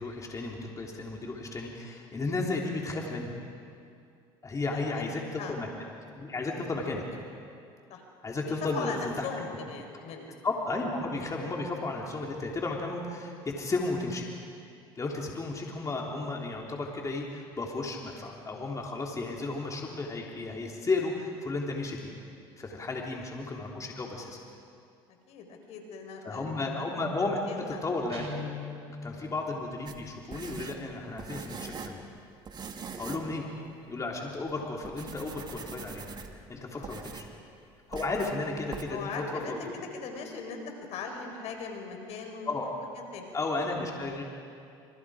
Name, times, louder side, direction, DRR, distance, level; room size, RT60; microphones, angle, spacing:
voice 1, 0.0-3.3 4.4-5.7 6.1-7.0 8.2-9.3 10.4-14.3 14.9-22.1 22.6-24.4 26.2-28.2 29.0-32.0 33.0-33.5 33.9-36.1 36.5-37.3 37.9-39.7 42.5-42.8 43.3-44.2, left 3 dB, 25° left, -1 dB, 3.4 m, -33 dB
voice 2, 4.7-5.6 7.9-8.0 8.5-10.3 25.3-26.8 27.5-28.0 29.1-29.3 33.2-33.3 36.7-37.0 38.9-40.6 40.9-42.5 43.0-43.2, left 5 dB, 60° left, 4 dB, 4.7 m, -40 dB
Guitar, 28.1-28.9, left 3 dB, 55° right, 5.0 m, -38 dB
sound 1, 29.9-32.0 32.5-33.3 33.7-33.8 34.4-34.5 34.8-36.4 36.8-37.4 37.9-38.4 38.7-38.8, right 5 dB, 35° right, 2.3 m, -42 dB
27.5 x 27.5 x 5.0 m, 2.4 s
supercardioid pair, 80°, 12 cm